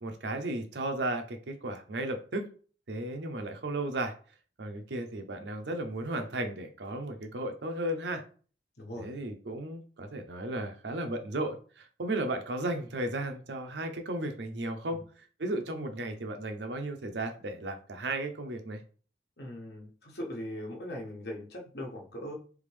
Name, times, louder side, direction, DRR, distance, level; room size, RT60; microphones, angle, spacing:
voice 1, 0.0-2.5 2.9-4.1 4.6-8.2 9.0-18.8, right 1 dB, 80° right, 6 dB, 0.7 m, -35 dB
voice 2, 8.8-9.1 19.4-22.3, equal, 65° left, 0 dB, 1.1 m, -40 dB
3.6 x 3.5 x 3.4 m, 0.40 s
head